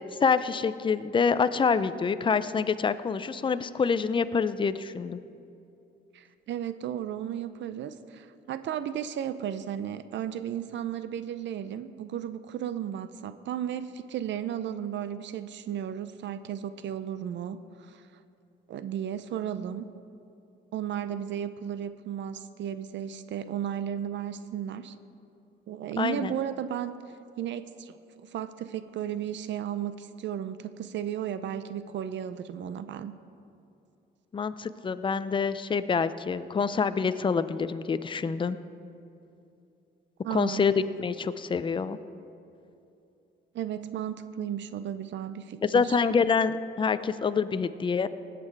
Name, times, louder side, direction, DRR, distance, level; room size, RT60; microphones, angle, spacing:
voice 1, 0.2-5.2 26.0-26.3 34.3-38.6 40.3-40.7 41.0-42.0 45.6-48.1, left 5 dB, 25° left, 13 dB, 0.5 m, -26 dB
voice 2, 6.1-18.0 18.7-19.9 20.7-24.9 25.7-26.9 27.4-33.1 40.2-40.6 43.5-46.0, right 9 dB, 65° right, 12 dB, 0.6 m, -34 dB
18.0 x 7.6 x 4.6 m, 2.7 s
cardioid pair, 90°, 20 cm